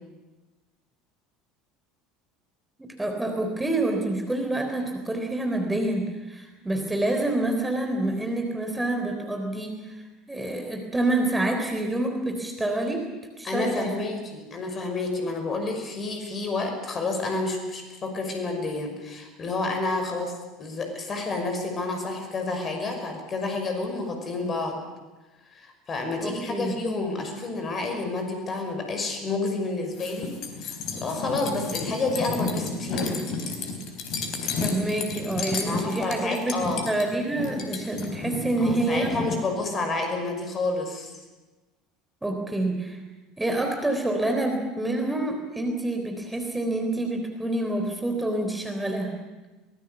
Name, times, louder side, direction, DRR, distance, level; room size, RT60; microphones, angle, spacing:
voice 1, 2.8-10.0 10.3-13.1 13.4-13.9 26.2-26.7 34.6-39.2 42.2-43.0 43.4-49.1, right 2 dB, 10° right, 3 dB, 3.7 m, -27 dB
voice 2, 13.4-20.3 20.6-24.8 25.5-30.3 30.6-33.2 35.7-36.9 38.6-41.1, left 3 dB, 30° left, 4 dB, 5.8 m, -29 dB
sound 1, 29.9-39.4, left 4 dB, 50° left, 4.2 m, -32 dB
23.5 x 20.0 x 7.1 m, 1.2 s
figure-of-eight pair, 70°, 0 cm